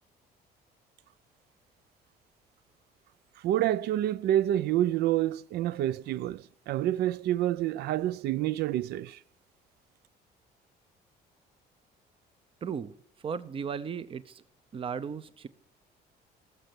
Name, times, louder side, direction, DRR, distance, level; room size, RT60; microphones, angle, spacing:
voice 1, 3.4-9.2, right 13 dB, 75° right, 0.5 m, -28 dB
voice 2, 12.6-12.9 13.2-14.4 14.7-15.5, right 6 dB, 30° right, 0.6 m, -36 dB
18.0 x 6.7 x 6.0 m
cardioid pair, 110°, 17 cm